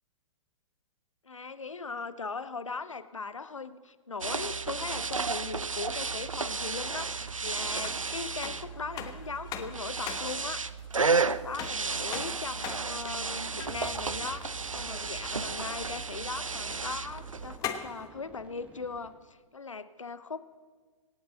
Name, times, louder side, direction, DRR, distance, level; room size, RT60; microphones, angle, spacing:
voice 1, 1.2-10.8 11.1-20.4, left 4 dB, 75° left, 14 dB, 0.8 m, -39 dB
sound 1, 4.2-17.6, right 4 dB, 85° right, 0.5 m, -33 dB
sound 2, 6.5-18.1, left 9 dB, 20° left, 1.2 m, -44 dB
sound 3, 13.6-19.2, right 1 dB, 10° right, 1.5 m, -52 dB
25.0 x 8.7 x 4.0 m, 1.5 s
figure-of-eight pair, 115°, 16 cm